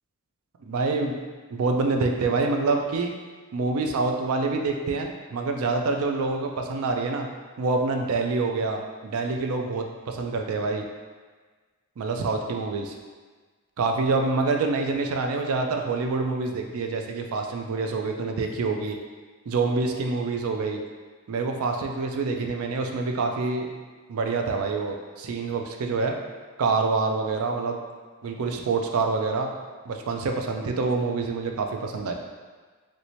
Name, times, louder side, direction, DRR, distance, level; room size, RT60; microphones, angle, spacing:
voice 1, 0.6-1.1 1.5-3.1 3.5-7.3 7.6-10.8 12.0-12.9 13.8-19.0 19.5-20.8 21.3-23.7 24.1-26.1 26.6-27.8 28.2-29.5 29.9-32.1, right 3 dB, 70° right, 3 dB, 0.4 m, -26 dB
3.1 x 2.7 x 3.0 m, 1.4 s
head